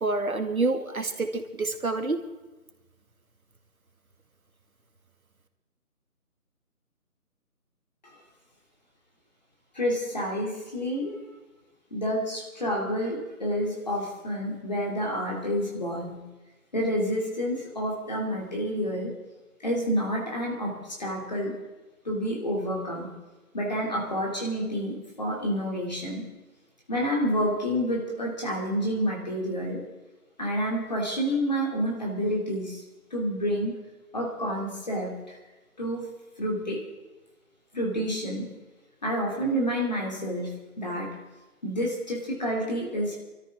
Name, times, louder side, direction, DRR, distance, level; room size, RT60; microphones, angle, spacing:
voice 1, 0.0-2.2, right 3 dB, 70° right, 6 dB, 2.1 m, -27 dB
voice 2, 9.7-11.2 11.9-16.2 16.7-19.1 19.6-21.6 22.0-23.1 23.5-26.2 26.9-29.8 30.4-32.8 33.1-33.8 34.1-35.4 35.8-36.1 36.4-36.8 37.7-38.5 39.0-41.2 41.6-43.2, equal, 30° left, -2 dB, 2.7 m, -29 dB
23.0 x 13.5 x 3.6 m, 1.1 s
figure-of-eight pair, 175°, 45 cm